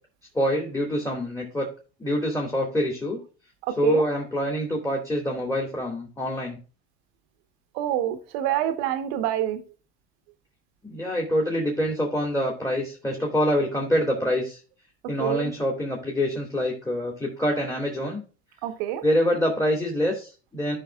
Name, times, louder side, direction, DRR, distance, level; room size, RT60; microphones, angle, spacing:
voice 1, 0.3-1.7 2.0-3.2 3.8-6.6 10.8-14.6 15.1-18.2 19.0-20.8, equal, 10° left, -1 dB, 2.4 m, -25 dB
voice 2, 3.7-4.1 7.7-9.6 15.2-15.5 18.6-19.0, right 12 dB, 65° right, 9 dB, 1.3 m, -26 dB
14.5 x 5.2 x 2.4 m, 0.36 s
hypercardioid pair, 80°, 33 cm